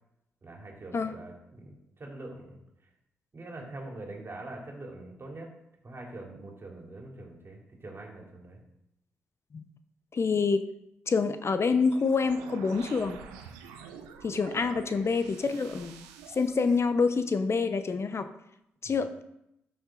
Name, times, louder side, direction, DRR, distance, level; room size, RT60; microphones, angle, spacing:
voice 1, 0.4-2.6 3.3-5.5 5.8-8.6 18.8-19.0, right 2 dB, 40° right, 0 dB, 3.3 m, -44 dB
voice 2, 10.1-10.7 11.1-13.2 14.2-16.0 16.4-18.3 18.8-19.2, left 4 dB, 45° left, 10 dB, 0.8 m, -27 dB
sound 1, 11.8-16.8, right 7 dB, 85° right, 0.9 m, -47 dB
13.0 x 6.0 x 3.9 m, 0.83 s
hypercardioid pair, 40°, 6 cm